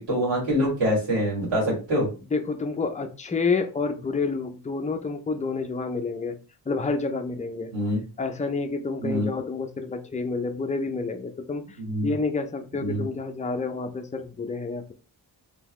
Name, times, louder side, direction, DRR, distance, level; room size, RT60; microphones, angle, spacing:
voice 1, 0.0-2.1 7.7-8.0 9.0-9.3 11.8-12.1 12.8-13.0, equal, 85° right, -6 dB, 2.5 m, -25 dB
voice 2, 2.3-6.4 6.7-7.7 8.2-11.8 12.0-14.9, left 4 dB, 15° left, 5 dB, 0.5 m, -29 dB
3.9 x 3.4 x 3.1 m, 0.33 s
wide cardioid pair, 115°, 42 cm